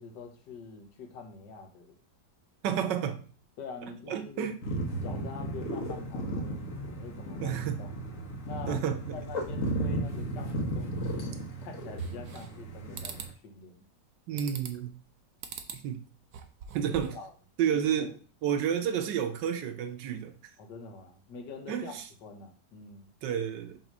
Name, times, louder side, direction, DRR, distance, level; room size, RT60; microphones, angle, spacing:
voice 1, 0.0-2.0 2.7-2.8 3.6-4.5 5.0-7.9 8.4-8.8 9.1-13.8 14.4-14.5 17.1-17.3 17.7-18.1 20.6-23.1, left 4 dB, 75° left, 1.6 m, -45 dB
voice 2, 2.6-3.2 4.1-4.6 7.4-7.8 8.7-9.2 14.3-15.0 15.8-16.0 16.7-17.2 17.6-18.1 18.4-20.3 21.7-22.0 23.2-23.8, right 8 dB, 85° right, 1.4 m, -30 dB
sound 1, 4.6-13.3, right 1 dB, 50° left, 1.3 m, -35 dB
sound 2, 12.0-12.6 13.0-13.3 14.4-14.9 15.4-15.8 16.2-17.3, right 6 dB, 65° right, 1.1 m, -43 dB
6.0 x 2.9 x 5.3 m
omnidirectional pair, 1.9 m